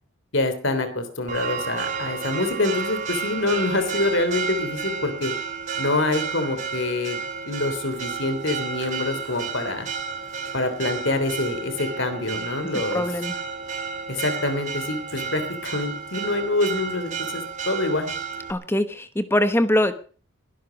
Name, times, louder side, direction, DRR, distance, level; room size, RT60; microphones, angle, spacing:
voice 1, 0.3-5.3 5.8-7.2 7.4-9.9 10.5-13.0 14.1-18.1, left 2 dB, 60° left, 9 dB, 3.4 m, -26 dB
Church bell, 1.3-18.5, right 5 dB, 35° right, 3.0 m, -31 dB
voice 2, 12.9-13.4 18.5-20.0, left 1 dB, 10° left, 11 dB, 1.0 m, -22 dB
21.5 x 12.0 x 5.2 m, 0.41 s
head